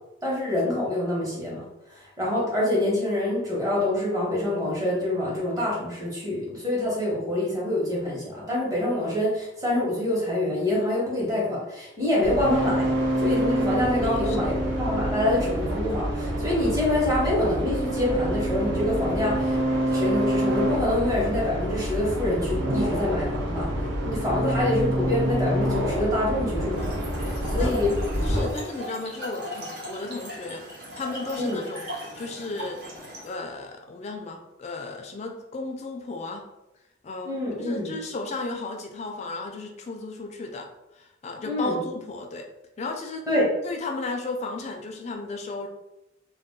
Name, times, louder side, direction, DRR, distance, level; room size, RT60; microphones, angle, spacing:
voice 1, 0.2-1.6 1.9-12.9 13.2-19.6 19.9-23.7 24.0-27.9 28.3-28.5 31.3-31.6 37.2-38.0 41.4-41.8 43.3-43.5, left 1 dB, 15° right, -5 dB, 1.0 m, -26 dB
sound 1, 12.2-28.4, right 1 dB, 70° right, 0.7 m, -27 dB
voice 2, 14.0-14.5 27.6-31.9 32.2-32.8 33.2-36.5 37.0-42.5 42.8-43.3 43.6-45.7, left 3 dB, 35° left, 3 dB, 0.3 m, -35 dB
Trickle dribble / Fill (with liquid), 26.7-33.3, equal, 50° right, 1.0 m, -38 dB
2.3 x 2.2 x 3.6 m, 0.92 s
head